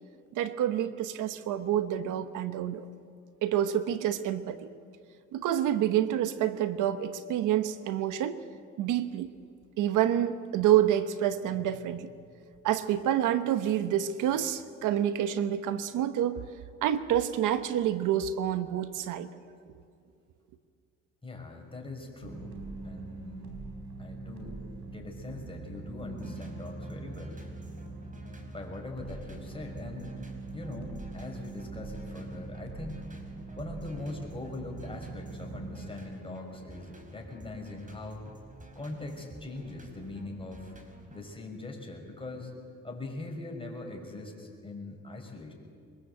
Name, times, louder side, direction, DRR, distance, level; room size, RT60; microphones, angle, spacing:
voice 1, 0.3-2.9 3.4-4.7 5.3-8.4 8.8-9.3 9.8-12.1 12.6-16.4 16.8-19.3, right 11 dB, 85° right, 11 dB, 1.1 m, -28 dB
voice 2, 21.2-22.6 22.8-23.5 24.0-24.6 24.9-27.5 28.5-30.2 30.5-33.1 33.6-38.2 38.7-40.7 41.1-42.5 42.8-45.5, left 2 dB, 15° left, 1 dB, 5.9 m, -41 dB
sound 1, 22.2-35.9, right 3 dB, 70° right, 4.8 m, -43 dB
sound 2, 26.0-41.2, right 2 dB, 25° right, 4.6 m, -51 dB
24.0 x 21.0 x 8.2 m, 2.4 s
cardioid pair, 90°, 30 cm